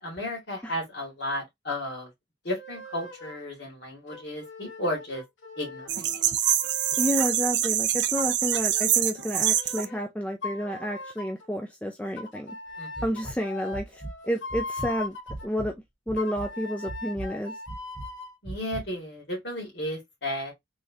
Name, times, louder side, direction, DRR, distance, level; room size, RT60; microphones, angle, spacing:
voice 1, 0.0-2.1 2.4-5.2 5.6-6.2 12.8-12.9 18.4-20.5, left 1 dB, 65° left, 2.2 m, -33 dB
sound 1, 2.5-3.5 4.1-7.5 8.2-10.0 10.4-11.5 12.2-15.5 16.2-18.4, left 3 dB, 90° left, 1.0 m, -40 dB
sound 2, 5.9-9.9, right 11 dB, 65° right, 0.5 m, -25 dB
voice 2, 7.0-12.6 13.0-15.2 15.4-15.7 16.1-17.6, equal, 5° left, 0.4 m, -30 dB
sound 3, 13.0-13.4 13.7-14.1 14.5-15.7 16.1-16.5 16.9-17.3 17.7-18.1 18.5-18.8, right 1 dB, 10° right, 1.3 m, -37 dB
3.5 x 3.2 x 2.7 m
head